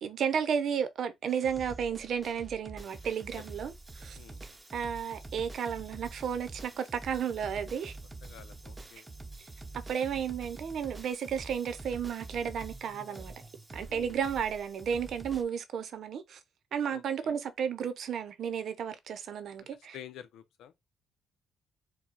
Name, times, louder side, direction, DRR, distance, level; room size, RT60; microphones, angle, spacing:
voice 1, 0.0-4.2 4.7-7.9 9.7-13.3 13.7-16.4 16.7-20.0, right 7 dB, 65° right, 0.8 m, -33 dB
sound 1, 1.3-15.4, right 2 dB, 20° right, 0.7 m, -46 dB
voice 2, 8.2-9.1 13.9-14.2 16.9-17.4 19.9-20.7, left 10 dB, 85° left, 0.6 m, -49 dB
4.5 x 2.2 x 4.0 m
cardioid pair, 90°, 0 cm